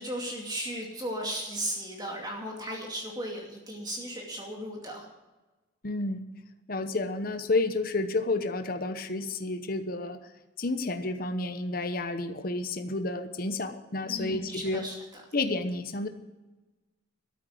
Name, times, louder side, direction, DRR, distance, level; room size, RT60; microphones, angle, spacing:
voice 1, 0.0-5.0 14.1-14.9, equal, 20° right, -1 dB, 2.4 m, -36 dB
voice 2, 5.8-6.2 6.7-10.2 10.6-14.9 15.3-16.1, left 2 dB, 50° left, 8 dB, 1.0 m, -30 dB
13.0 x 9.2 x 7.8 m, 1.1 s
head